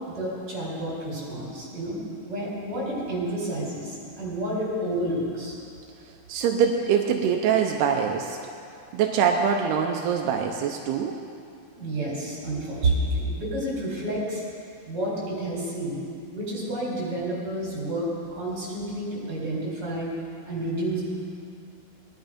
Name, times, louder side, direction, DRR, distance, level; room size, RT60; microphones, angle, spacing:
voice 1, 0.1-5.5 11.7-14.4 14.8-16.0 16.3-20.1 20.5-21.0, right 1 dB, 25° right, -5 dB, 4.8 m, -30 dB
voice 2, 6.3-8.4 8.9-11.2, right 7 dB, 85° right, 2 dB, 2.8 m, -24 dB
20.0 x 11.0 x 5.2 m, 2.5 s
omnidirectional pair, 4.6 m